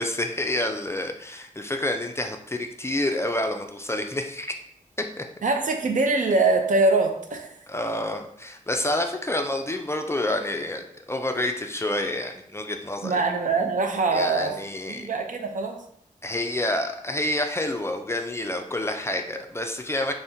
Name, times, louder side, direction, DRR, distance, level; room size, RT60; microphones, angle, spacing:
voice 1, 0.0-4.5 5.2-5.3 7.7-13.2 14.1-15.1 16.2-20.1, left 1 dB, 20° left, 4 dB, 0.3 m, -28 dB
voice 2, 5.4-7.5 13.0-14.5 14.9-15.8, right 3 dB, 65° right, 4 dB, 0.5 m, -23 dB
3.5 x 2.1 x 2.7 m, 0.71 s
cardioid pair, 60°, 15 cm